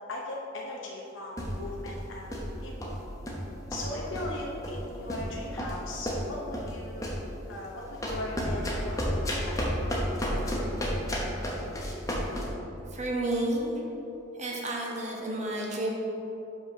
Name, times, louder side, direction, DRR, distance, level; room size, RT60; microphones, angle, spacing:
voice 1, 0.0-3.0 3.7-7.1 7.5-9.6, left 1 dB, 75° left, -2 dB, 0.7 m, -38 dB
sound 1, 1.4-2.0 2.3-2.5 2.8-3.4 3.7-4.4 4.6-4.8 5.1-6.7 7.0-7.3 8.0-12.5, equal, 15° left, 0.9 m, -31 dB
voice 2, 12.9-13.7 14.4-15.9, right 1 dB, 35° right, -2 dB, 1.0 m, -31 dB
5.4 x 4.8 x 5.8 m, 3.0 s
head